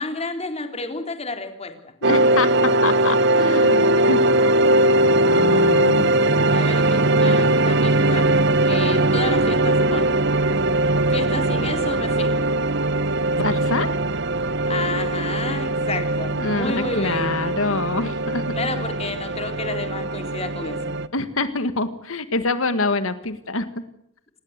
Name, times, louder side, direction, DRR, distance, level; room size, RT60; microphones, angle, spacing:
voice 1, 0.0-1.8 6.5-8.3 8.7-10.1 11.1-12.3 14.7-17.3 18.5-20.9, left 3 dB, 30° left, 6 dB, 3.7 m, -31 dB
voice 2, 2.0-4.2 5.2-6.1 13.4-13.9 16.3-18.4 21.1-23.7, left 3 dB, 70° left, 11 dB, 1.6 m, -25 dB
sound 1, 2.0-21.1, right 1 dB, 55° right, 1.0 m, -20 dB
28.0 x 20.0 x 8.2 m, 0.73 s
head